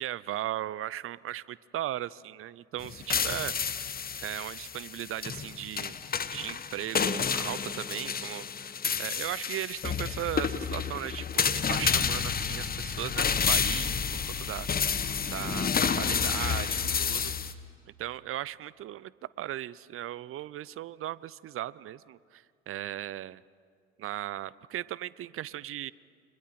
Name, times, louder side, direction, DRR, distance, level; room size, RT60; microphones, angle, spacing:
voice 1, 0.0-3.8 4.2-6.0 6.3-8.7 9.0-14.7 15.3-17.6 17.9-23.4 24.0-25.9, right 13 dB, 40° right, 20 dB, 0.7 m, -37 dB
sound 1, 2.8-17.5, left 6 dB, 25° left, 1.3 m, -30 dB
30.0 x 25.0 x 6.0 m, 2.1 s
hypercardioid pair, 65°, 35 cm